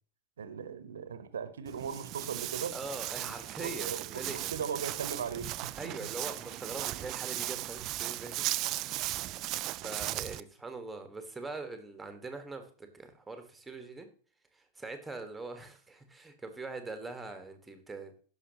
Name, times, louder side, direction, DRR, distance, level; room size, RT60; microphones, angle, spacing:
voice 1, 0.4-2.8 3.6-6.1, right 7 dB, 65° right, 12 dB, 1.0 m, -38 dB
Walk footsteps, 1.7-10.4, right 16 dB, 35° right, 0.4 m, -37 dB
voice 2, 2.7-4.5 5.8-8.5 9.8-14.1 14.5-18.1, right 3 dB, 10° right, 7 dB, 1.6 m, -42 dB
16.5 x 6.4 x 3.0 m, 0.41 s
figure-of-eight pair, 90°, 0 cm